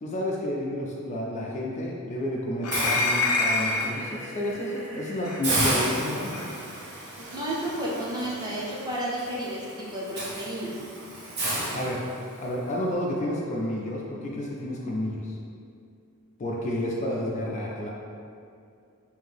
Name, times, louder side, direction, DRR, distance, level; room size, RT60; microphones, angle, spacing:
voice 1, 0.0-6.4 11.6-12.0 12.3-15.4 16.4-17.9, left 1 dB, 30° left, -3 dB, 0.3 m, -30 dB
sound 1, 2.6-4.0 5.2-5.4 6.3-6.5, left 3 dB, 80° left, 0.6 m, -25 dB
Hiss, 2.7-3.8 4.3-4.5 4.8-4.9 5.4-12.5, right 1 dB, 50° right, 1.0 m, -32 dB
sound 2, 3.6-5.9, right 1 dB, 75° right, 1.0 m, -42 dB
voice 2, 7.2-10.7, right 1 dB, 20° right, -6 dB, 0.6 m, -32 dB
3.7 x 2.6 x 3.4 m, 2.4 s
head